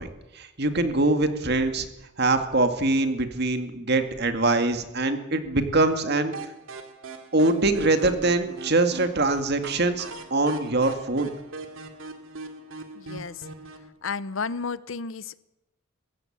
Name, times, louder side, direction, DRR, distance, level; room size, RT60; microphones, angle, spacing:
voice 1, 0.0-1.9 2.2-6.4 7.3-10.1 10.3-11.3, right 2 dB, 55° right, 7 dB, 2.1 m, -23 dB
sound 1, 6.3-13.9, right 3 dB, 75° right, 2.4 m, -41 dB
voice 2, 13.0-13.4 14.0-15.5, left 5 dB, 70° left, 17 dB, 0.8 m, -32 dB
22.5 x 15.5 x 8.7 m, 0.96 s
head